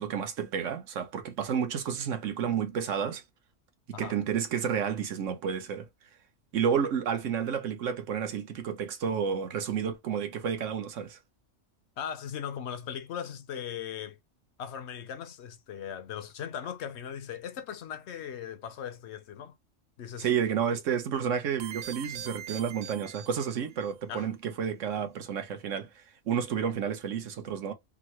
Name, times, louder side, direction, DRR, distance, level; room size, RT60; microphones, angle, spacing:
voice 1, 0.0-3.2 4.0-5.9 6.5-11.2 20.2-27.7, right 7 dB, 80° right, 1.2 m, -31 dB
voice 2, 12.0-14.2 14.6-19.6 20.0-20.3 24.1-24.3, left 8 dB, 65° left, 0.8 m, -38 dB
sound 1, 21.6-23.9, right 9 dB, 55° right, 0.6 m, -42 dB
3.6 x 2.0 x 2.9 m
omnidirectional pair, 1.3 m